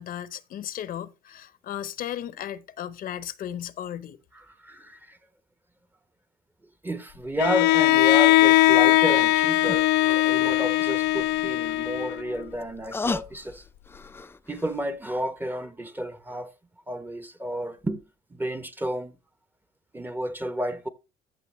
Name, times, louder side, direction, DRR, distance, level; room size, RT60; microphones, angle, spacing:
voice 1, 0.0-4.2, left 10 dB, 60° left, 0.8 m, -35 dB
voice 2, 4.5-5.2 6.8-13.6 14.5-16.5 16.9-18.0 18.3-19.1 19.9-20.9, equal, 10° right, 0.8 m, -31 dB
Bowed string instrument, 7.4-12.4, left 16 dB, 85° left, 0.4 m, -20 dB
sound 1, 9.3-9.4 9.7-9.8 11.7-14.8 15.2-15.3, left 3 dB, 15° left, 0.4 m, -35 dB
14.0 x 5.9 x 3.1 m
cardioid pair, 110°, 17 cm